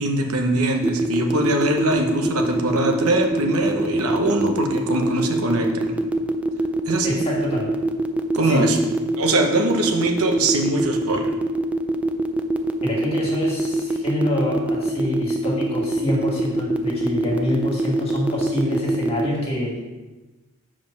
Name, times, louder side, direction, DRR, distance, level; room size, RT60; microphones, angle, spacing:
voice 1, 0.0-6.0 6.9-7.2 8.3-8.8 9.2-11.3, right 2 dB, 75° right, 3 dB, 1.0 m, -22 dB
sound 1, 0.8-19.3, right 2 dB, 5° right, 0.4 m, -23 dB
voice 2, 7.0-7.7 8.4-8.7 12.8-19.8, left 1 dB, 25° left, -4 dB, 2.2 m, -26 dB
7.6 x 5.0 x 5.9 m, 1.2 s
head